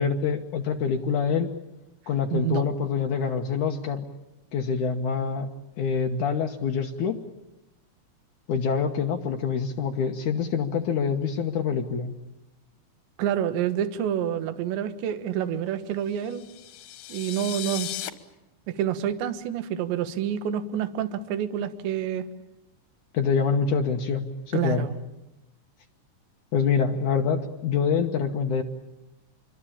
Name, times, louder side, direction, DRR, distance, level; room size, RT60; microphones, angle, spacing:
voice 1, 0.0-1.5 2.1-4.1 4.5-5.5 5.8-7.2 8.5-12.1 23.1-24.9 26.5-28.6, left 6 dB, 85° left, 2 dB, 1.7 m, -26 dB
voice 2, 2.3-2.6 13.2-16.5 17.1-17.9 18.7-22.3 24.5-25.0, right 10 dB, 75° right, 11 dB, 3.4 m, -28 dB
sound 1, 16.2-18.1, left 12 dB, 65° left, 2.5 m, -36 dB
26.5 x 23.0 x 8.7 m, 0.95 s
omnidirectional pair, 5.5 m